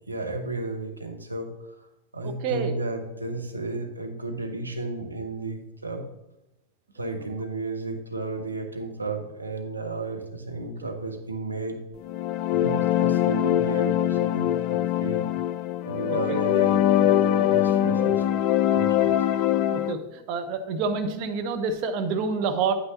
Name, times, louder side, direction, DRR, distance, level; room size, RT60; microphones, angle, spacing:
voice 1, 0.1-1.9 2.1-6.1 6.9-11.8 12.5-15.3 15.8-18.2 18.7-19.2, right 2 dB, 80° right, 4 dB, 1.0 m, -33 dB
voice 2, 2.2-2.8 10.6-10.9 16.0-16.4 19.7-22.7, right 5 dB, 45° right, 6 dB, 1.0 m, -28 dB
sound 1, 12.0-19.9, left 12 dB, 40° left, 0.4 m, -23 dB
9.5 x 8.9 x 2.7 m, 0.95 s
figure-of-eight pair, 90°, 0 cm